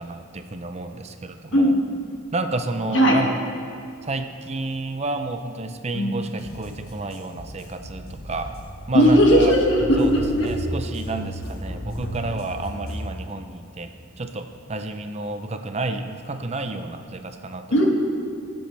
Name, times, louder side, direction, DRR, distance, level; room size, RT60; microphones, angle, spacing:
voice 1, 0.0-1.7 2.3-3.3 4.0-8.5 8.9-9.5 10.0-13.9 14.2-17.9, right 2 dB, 30° right, 7 dB, 0.6 m, -30 dB
sound 1, 6.4-13.0, equal, 85° left, 3.0 m, -34 dB
voice 2, 8.9-10.5 17.7-18.0, equal, 60° left, -1 dB, 2.0 m, -17 dB
23.0 x 7.8 x 3.3 m, 2.6 s
head